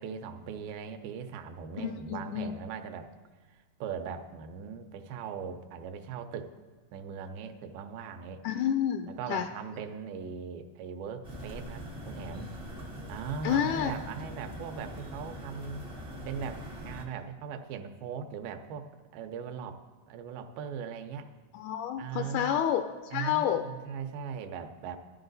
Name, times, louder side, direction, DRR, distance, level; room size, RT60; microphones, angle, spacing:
voice 1, 0.0-3.1 3.5-6.5 6.9-8.5 9.1-12.5 13.1-15.9 16.3-21.3 22.0-22.6 23.1-25.0, right 6 dB, 90° right, 6 dB, 2.5 m, -39 dB
voice 2, 1.8-2.5 8.4-9.5 13.4-13.9 21.5-23.7, left 10 dB, 85° left, 7 dB, 1.8 m, -29 dB
sound 1, 11.2-17.0, equal, 60° right, 0.3 m, -42 dB
13.0 x 11.0 x 4.0 m, 1.3 s
omnidirectional pair, 4.1 m